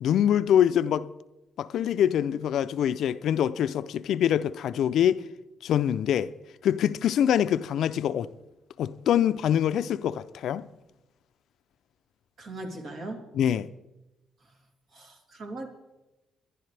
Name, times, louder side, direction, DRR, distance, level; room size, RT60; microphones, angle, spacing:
voice 1, 0.0-1.1 1.6-5.2 5.6-6.3 6.6-8.3 8.8-10.7 13.3-13.7, left 10 dB, 75° left, 0.5 m, -24 dB
voice 2, 12.4-13.2 14.9-15.7, right 2 dB, 60° right, 3.1 m, -39 dB
23.0 x 11.0 x 3.3 m
cardioid pair, 90°, 0 cm